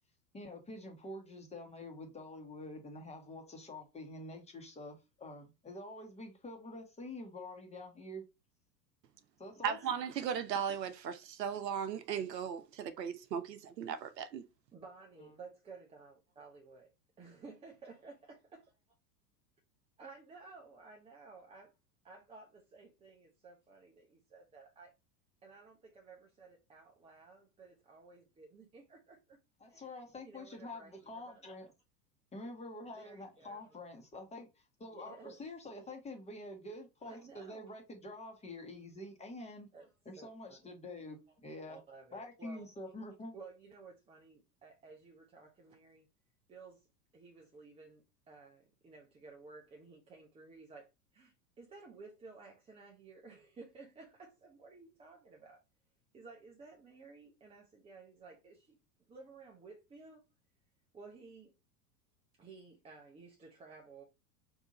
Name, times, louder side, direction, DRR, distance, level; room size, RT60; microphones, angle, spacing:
voice 1, 0.3-8.2 9.4-9.8 15.2-15.3 29.6-31.7 32.3-39.7 40.0-41.8 42.1-43.3, left 1 dB, 15° left, 1.2 m, -47 dB
voice 2, 9.6-14.4, right 8 dB, 75° right, 0.7 m, -37 dB
voice 3, 14.7-18.8 20.0-21.7 22.0-24.9 25.4-29.4 29.7-29.9 30.2-31.7 33.0-33.8 34.9-35.4 37.1-37.7 39.7-39.9 40.2-40.6 41.7-42.9 43.3-46.1 46.5-46.9 47.1-55.6 56.1-58.8 59.1-60.2 60.9-61.5 62.3-64.0, right 4 dB, 10° right, 0.5 m, -55 dB
3.5 x 2.6 x 4.1 m
figure-of-eight pair, 90°, 50 cm